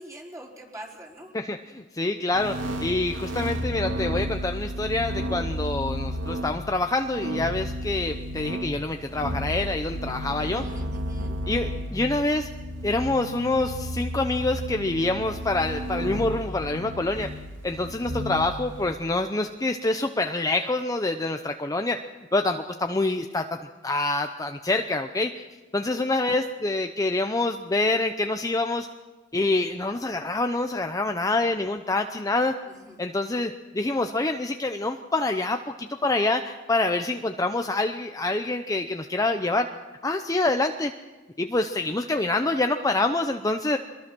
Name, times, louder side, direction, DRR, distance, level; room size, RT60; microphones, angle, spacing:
voice 1, 0.0-1.3 10.3-11.4 32.6-33.0, right 1 dB, 15° right, -2 dB, 4.6 m, -44 dB
voice 2, 1.3-10.6 11.5-12.5 12.8-17.3 17.6-22.0 22.3-23.6 23.8-25.5 25.7-28.9 29.3-32.6 33.0-39.7 40.0-40.9 41.4-43.8, left 2 dB, 20° left, 5 dB, 0.7 m, -26 dB
sound 1, 2.3-18.9, equal, 85° right, 2.8 m, -32 dB
23.5 x 22.0 x 6.2 m, 1.2 s
head